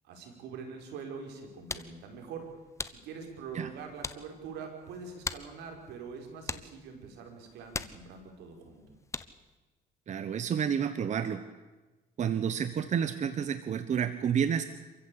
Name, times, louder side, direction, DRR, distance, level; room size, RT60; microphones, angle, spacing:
voice 1, 0.0-2.5 2.8-8.8, right 5 dB, 80° right, 3 dB, 5.4 m, -44 dB
sound 1, 1.3-9.6, left 3 dB, 15° left, 1.0 m, -43 dB
voice 2, 10.1-11.4 12.2-14.6, right 8 dB, 45° right, 11 dB, 1.2 m, -30 dB
27.0 x 15.0 x 8.7 m, 1.2 s
cardioid pair, 110°, 17 cm